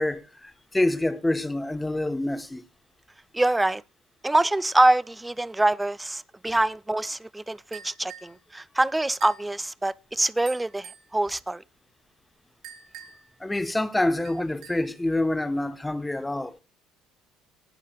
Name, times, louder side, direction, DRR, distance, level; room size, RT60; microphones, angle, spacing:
voice 1, 0.0-2.6 6.5-6.6 13.4-16.6, left 1 dB, 10° left, 1.8 m, -27 dB
voice 2, 3.3-3.8 4.2-11.6, right 2 dB, 10° right, 0.6 m, -25 dB
sound 1, 7.7-8.4 9.2-9.5 10.4-11.1 12.6-13.3 14.2-15.0, right 9 dB, 70° right, 3.2 m, -45 dB
18.5 x 6.6 x 4.7 m
hypercardioid pair, 60°, 0 cm